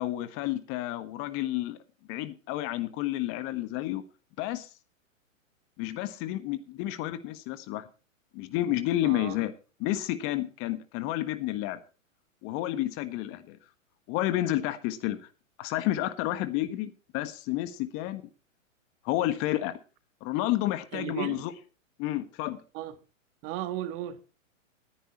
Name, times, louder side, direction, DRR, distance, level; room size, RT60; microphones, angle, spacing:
voice 1, 0.0-1.8 2.1-4.0 4.4-4.7 5.8-7.9 8.3-9.5 9.8-11.8 12.4-13.6 14.1-15.2 15.6-18.2 19.0-19.8 20.2-21.5 22.0-22.6, left 14 dB, 35° left, 1.5 m, -30 dB
voice 2, 9.0-9.4 20.9-21.5 22.7-22.9 23.4-24.2, right 12 dB, 35° right, 1.5 m, -35 dB
19.0 x 10.5 x 3.1 m
hypercardioid pair, 125°, 40 cm